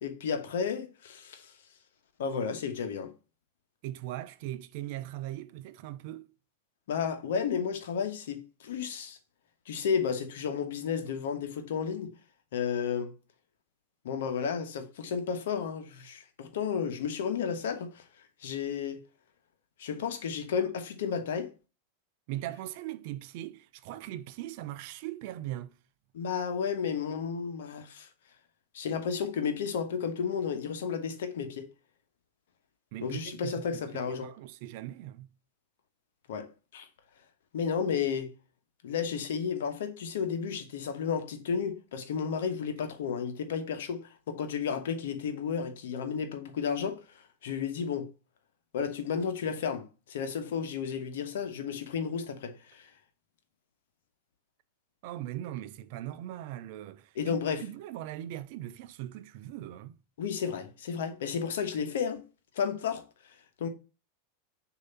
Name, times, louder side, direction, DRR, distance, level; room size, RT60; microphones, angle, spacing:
voice 1, 0.0-1.5 2.2-3.1 6.9-9.2 9.7-12.1 12.5-13.1 14.0-18.0 18.4-19.0 19.8-21.5 26.1-28.1 28.7-31.7 33.0-34.3 36.3-36.9 37.5-38.3 38.8-47.0 47.4-48.1 48.7-52.9 57.2-57.6 60.2-62.2 62.5-63.0 63.6-63.7, left 6 dB, 70° left, 1.1 m, -32 dB
voice 2, 3.8-6.3 22.3-25.8 32.9-35.3 55.0-60.0, right 14 dB, 55° right, 0.5 m, -40 dB
6.4 x 2.8 x 5.3 m
hypercardioid pair, 90°, 0 cm